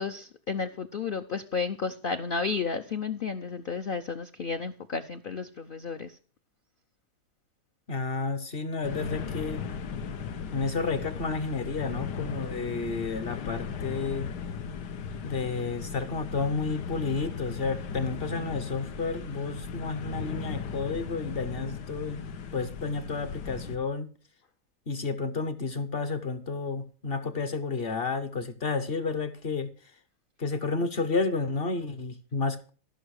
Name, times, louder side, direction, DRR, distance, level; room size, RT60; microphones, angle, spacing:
voice 1, 0.0-6.2, left 5 dB, 70° left, 8 dB, 0.5 m, -32 dB
voice 2, 7.9-9.6 10.5-14.3 15.2-22.2 22.5-24.1 24.9-29.7 30.4-32.7, left 4 dB, 45° left, 11 dB, 0.8 m, -31 dB
sound 1, 8.8-23.8, left 6 dB, 90° left, 1.5 m, -37 dB
14.0 x 6.1 x 6.4 m, 0.39 s
omnidirectional pair, 1.8 m